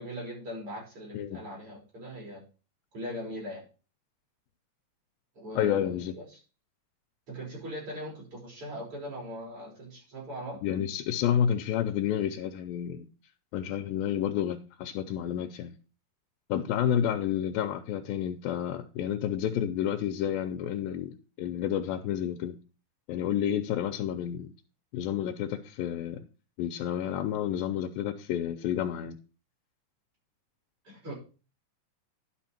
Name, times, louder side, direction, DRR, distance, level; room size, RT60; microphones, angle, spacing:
voice 1, 0.0-2.4 2.9-3.6 5.4-6.4 7.3-10.6 30.8-31.1, equal, 40° right, 5.8 m, -40 dB
voice 2, 5.6-6.1 10.6-13.1 13.5-15.7 16.5-21.1 21.4-22.6 23.1-24.5 24.9-26.2 26.6-29.2, left 10 dB, 90° left, 2.5 m, -30 dB
11.0 x 5.7 x 4.4 m
omnidirectional pair, 4.0 m